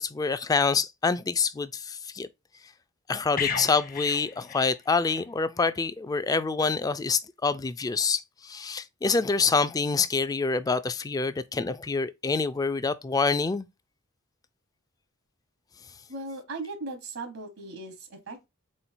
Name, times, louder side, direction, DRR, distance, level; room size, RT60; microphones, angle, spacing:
voice 1, 0.0-2.3 3.1-13.7, left 4 dB, 15° left, 0.3 m, -26 dB
sound 1, 3.4-5.3 5.6-5.8, left 7 dB, 45° left, 0.7 m, -34 dB
voice 2, 16.1-18.5, right 2 dB, 80° right, 1.1 m, -38 dB
4.3 x 3.9 x 2.6 m
head